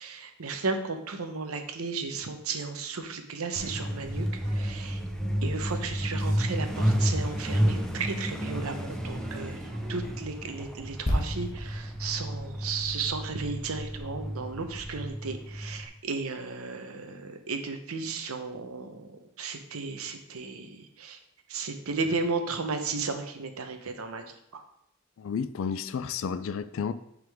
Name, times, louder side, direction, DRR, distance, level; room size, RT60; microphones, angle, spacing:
voice 1, 0.0-5.0 5.4-9.6 9.9-21.2 21.5-24.2 24.5-24.6, right 4 dB, 85° right, 6 dB, 0.8 m, -34 dB
Truck, 3.6-15.9, equal, 5° left, 0.5 m, -31 dB
sound 1, 3.6-10.2, right 2 dB, 65° right, 1.2 m, -51 dB
sound 2, 11.1-14.7 15.0-15.2, equal, 35° left, 1.1 m, -35 dB
voice 2, 25.2-26.9, left 6 dB, 65° left, 14 dB, 0.3 m, -31 dB
9.0 x 3.7 x 3.5 m, 0.77 s
head